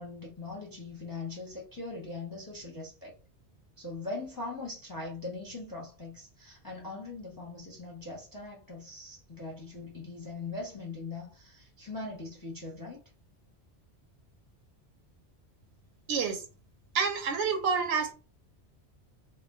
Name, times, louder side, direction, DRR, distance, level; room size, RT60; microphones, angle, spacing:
voice 1, 0.0-3.1 3.8-13.0, left 3 dB, 25° left, 0.6 m, -41 dB
voice 2, 16.1-16.4 16.9-18.1, right 5 dB, 85° right, 0.9 m, -28 dB
2.2 x 2.1 x 3.5 m
omnidirectional pair, 1.2 m